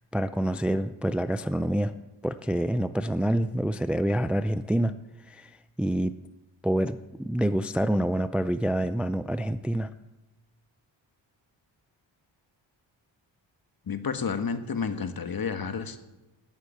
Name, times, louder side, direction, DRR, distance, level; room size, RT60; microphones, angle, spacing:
voice 1, 0.1-1.9 2.2-4.9 5.3-6.1 6.6-9.9, right 1 dB, 5° right, 12 dB, 0.4 m, -27 dB
voice 2, 13.9-16.0, left 6 dB, 50° left, 9 dB, 1.4 m, -30 dB
12.5 x 8.2 x 9.2 m, 1.1 s
cardioid pair, 85°, 47 cm